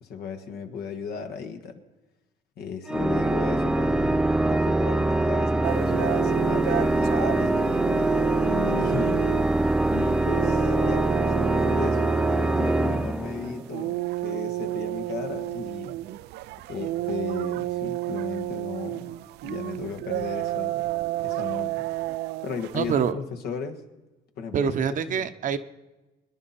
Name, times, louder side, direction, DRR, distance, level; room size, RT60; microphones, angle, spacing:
voice 1, 0.0-1.8 2.6-7.9 8.4-9.2 9.9-15.9 16.7-19.2 19.4-20.9 21.2-21.9 22.4-23.8 24.4-25.3, left 5 dB, 70° left, 6 dB, 1.6 m, -35 dB
Organ, 2.9-13.8, right 2 dB, 5° right, 0.5 m, -24 dB
sound 1, 5.6-23.1, right 17 dB, 85° right, 0.5 m, -31 dB
voice 2, 22.7-23.2 24.5-25.6, right 8 dB, 50° right, 10 dB, 0.9 m, -25 dB
23.0 x 10.5 x 4.2 m, 1.1 s
cardioid pair, 110°, 17 cm